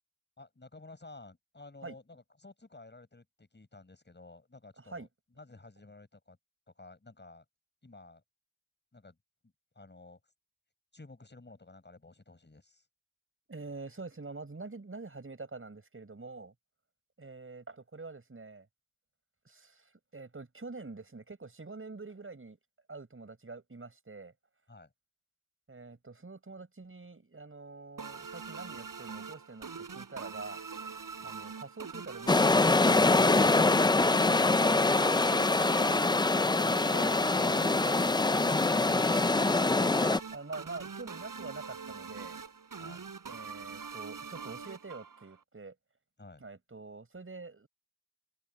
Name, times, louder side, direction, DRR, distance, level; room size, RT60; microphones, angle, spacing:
voice 1, 0.4-5.1 5.4-6.4 6.8-7.4 7.8-8.2 8.9-9.2 9.4-10.2 10.9-12.9 24.7-24.9 31.2-31.4 42.8-43.0 46.2-46.4, left 3 dB, 30° left, 7.2 m, -53 dB
voice 2, 4.8-5.1 13.5-16.5 17.2-18.7 19.4-19.8 20.1-22.6 22.9-24.3 25.7-30.6 31.2-33.4 36.4-38.5 40.3-42.4 43.3-45.7 46.4-47.7, right 3 dB, 35° right, 6.7 m, -46 dB
sound 1, 28.0-45.4, right 5 dB, 65° right, 6.4 m, -43 dB
sound 2, 32.3-40.2, left 3 dB, 15° left, 0.4 m, -24 dB
cardioid pair, 75°, 35 cm